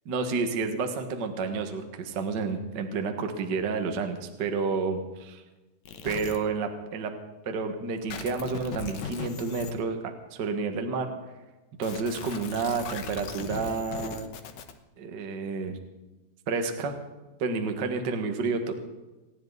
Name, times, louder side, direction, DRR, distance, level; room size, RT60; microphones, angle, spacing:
voice 1, 0.1-5.4 6.0-7.1 7.4-10.0 10.3-11.1 11.8-14.3 15.0-15.8 16.5-17.0 17.4-18.8, right 4 dB, 90° right, 5 dB, 0.9 m, -30 dB
sound 1, 5.9-6.4 8.1-9.7 11.8-14.7, left 7 dB, 70° left, 1.8 m, -38 dB
29.5 x 10.5 x 4.1 m, 1.1 s
omnidirectional pair, 4.6 m